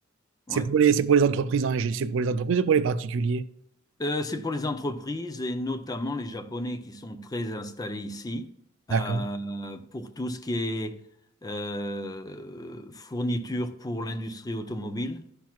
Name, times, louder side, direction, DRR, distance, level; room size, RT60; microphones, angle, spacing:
voice 1, 0.5-3.4 8.9-9.2, right 6 dB, 70° right, 0.4 m, -23 dB
voice 2, 4.0-8.5 8.9-11.0 11.4-15.3, left 1 dB, 20° left, 0.5 m, -32 dB
11.5 x 5.9 x 2.4 m
head